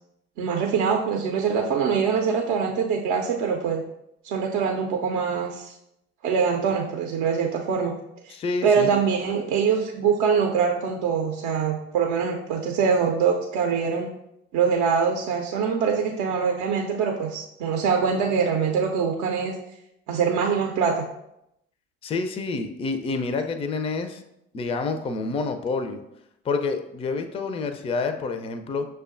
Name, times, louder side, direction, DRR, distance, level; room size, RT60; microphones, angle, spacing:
voice 1, 0.4-3.8 4.2-5.7 6.2-7.9 8.3-8.4 8.6-14.1 14.5-19.5 20.1-21.0, right 6 dB, 65° right, 1 dB, 0.5 m, -24 dB
voice 2, 8.3-8.9 22.0-24.2 24.5-26.0 26.4-28.9, left 4 dB, 20° left, 8 dB, 0.4 m, -28 dB
6.4 x 2.2 x 2.4 m, 0.82 s
figure-of-eight pair, 55°, 32 cm